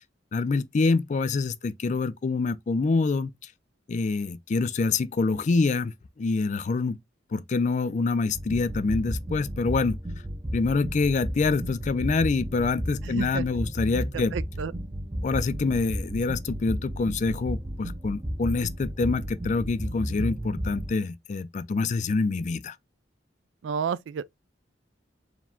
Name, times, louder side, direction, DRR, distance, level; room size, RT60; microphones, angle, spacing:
voice 1, 0.3-3.3 3.9-7.0 7.3-10.0 10.5-14.3 15.2-22.8, left 4 dB, 40° left, 0.3 m, -26 dB
sound 1, 8.3-21.0, equal, 20° right, 0.5 m, -33 dB
voice 2, 13.0-13.5 14.3-14.7 23.6-24.3, right 6 dB, 85° right, 0.3 m, -31 dB
4.8 x 2.2 x 3.5 m
head